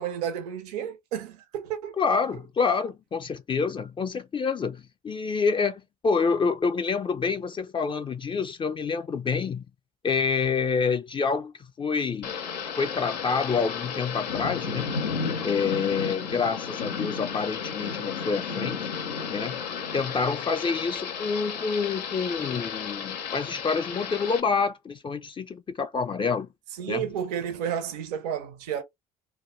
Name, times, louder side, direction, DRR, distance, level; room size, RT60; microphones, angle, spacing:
voice 1, 0.0-1.9 26.8-28.8, right 9 dB, 80° right, 0.5 m, -31 dB
voice 2, 2.0-9.7 10.0-12.3 12.8-14.9 15.4-18.9 19.3-19.6 19.9-26.5 26.9-27.1, left 5 dB, 25° left, 0.4 m, -27 dB
Thunder / Rain, 12.2-24.4, left 6 dB, 90° left, 0.5 m, -33 dB
2.2 x 2.1 x 3.0 m
hypercardioid pair, 60°, 20 cm